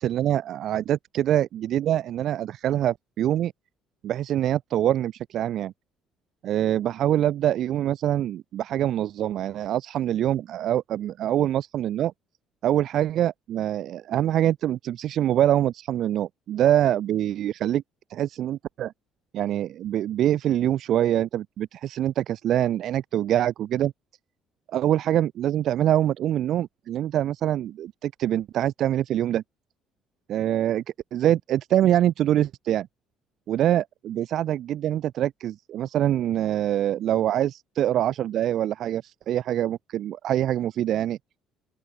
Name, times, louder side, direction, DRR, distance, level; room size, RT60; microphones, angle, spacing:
voice 1, 0.0-3.5 4.0-5.7 6.4-12.1 12.6-17.8 18.1-18.9 19.3-23.9 24.7-29.4 30.3-30.8 31.1-32.9 33.5-41.2, right 11 dB, 50° right, 7.4 m, -24 dB
open air
cardioid pair, 160°, 0 cm